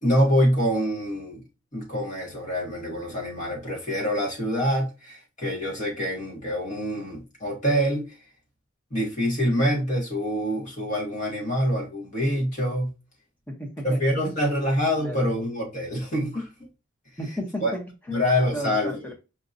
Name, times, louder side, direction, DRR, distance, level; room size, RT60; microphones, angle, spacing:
voice 1, 0.0-1.4 1.7-8.1 8.9-12.9 13.8-16.5 17.6-17.7 18.1-19.0, equal, 35° left, 1.6 m, -25 dB
voice 2, 13.5-14.0 14.3-14.4 15.0-15.2 17.2-18.2 18.5-19.1, equal, 10° left, 0.8 m, -34 dB
5.1 x 2.7 x 2.6 m
head